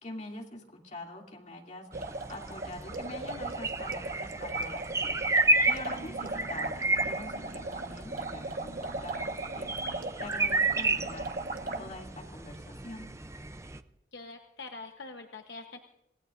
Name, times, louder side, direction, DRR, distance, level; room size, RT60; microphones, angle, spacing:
voice 1, 0.0-5.2 5.6-9.9 10.2-11.3 11.7-13.1, left 1 dB, 40° left, 0 dB, 2.8 m, -44 dB
sound 1, 1.9-13.8, right 2 dB, 15° right, 0.5 m, -32 dB
sound 2, 1.9-11.8, right 3 dB, 50° right, 1.4 m, -38 dB
sound 3, 5.9-12.0, right 2 dB, 90° right, 1.6 m, -51 dB
voice 2, 14.1-15.8, left 3 dB, 65° left, 4 dB, 1.1 m, -44 dB
28.0 x 17.5 x 2.6 m, 0.89 s
head